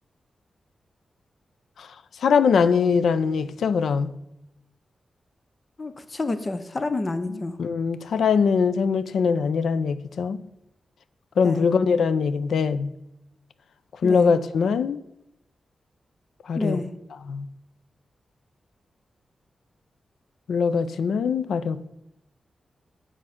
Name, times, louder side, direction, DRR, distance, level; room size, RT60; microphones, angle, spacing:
voice 1, 2.2-4.2 7.3-10.4 11.4-12.9 14.0-15.0 16.5-16.8 17.2-17.5 20.5-21.9, left 5 dB, 90° left, 0.5 m, -22 dB
voice 2, 5.8-7.5 11.4-11.7 14.0-14.3 16.6-16.9, left 2 dB, 30° left, 0.5 m, -28 dB
7.6 x 4.8 x 5.7 m
wide cardioid pair, 145°, 0 cm